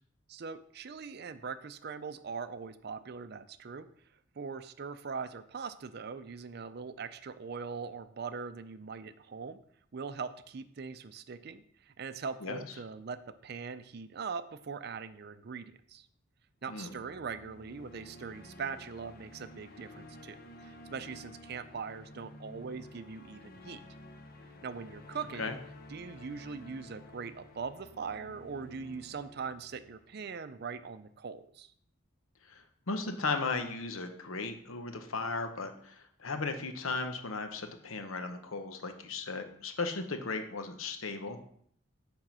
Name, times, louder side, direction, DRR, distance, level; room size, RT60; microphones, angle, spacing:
voice 1, 0.3-3.9 4.4-9.6 9.9-16.1 16.6-23.8 24.6-25.6 25.9-31.7, right 5 dB, 50° right, 13 dB, 0.5 m, -41 dB
sound 1, 16.7-30.8, left 1 dB, 45° left, 0.8 m, -52 dB
voice 2, 32.5-41.4, left 3 dB, 90° left, 7 dB, 1.0 m, -36 dB
8.9 x 3.7 x 6.0 m, 0.64 s
head